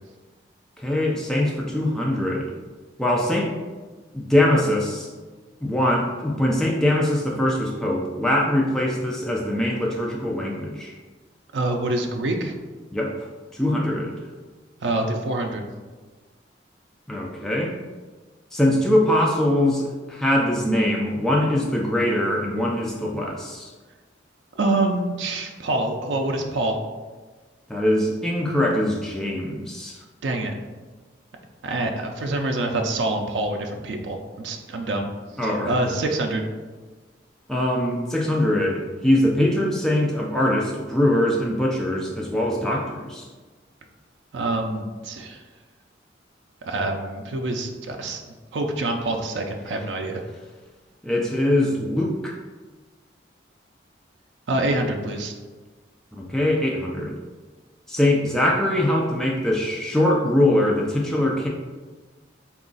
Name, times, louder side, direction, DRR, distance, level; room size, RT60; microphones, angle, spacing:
voice 1, 0.8-2.5 3.0-3.5 4.1-5.1 5.6-10.9 12.9-13.3 13.5-14.2 17.1-17.7 18.5-23.7 27.7-30.0 35.4-35.7 37.5-43.3 51.0-52.3 56.1-57.2 57.9-61.5, left 1 dB, 5° left, -2 dB, 0.3 m, -22 dB
voice 2, 11.5-12.5 14.8-15.7 24.5-26.8 30.2-30.5 31.6-35.1 35.4-36.5 44.3-45.4 46.6-48.2 48.5-50.2 54.5-55.3, right 2 dB, 70° right, 3 dB, 0.4 m, -26 dB
3.8 x 2.4 x 3.8 m, 1.3 s
head